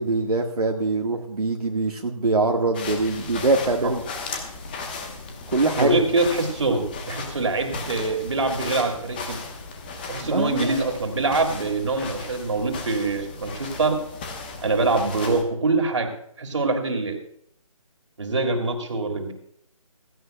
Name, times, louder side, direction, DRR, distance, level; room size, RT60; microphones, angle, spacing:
voice 1, 0.0-4.0 5.5-5.9 10.2-10.8, right 3 dB, 85° right, 1 dB, 1.6 m, -23 dB
sound 1, 2.7-15.4, left 4 dB, 15° left, 1.1 m, -36 dB
voice 2, 5.8-9.4 10.1-14.0 14.6-16.1 16.4-17.2 18.2-19.3, right 3 dB, 50° right, 4 dB, 2.5 m, -24 dB
17.0 x 16.0 x 2.3 m, 0.70 s
figure-of-eight pair, 165°, 19 cm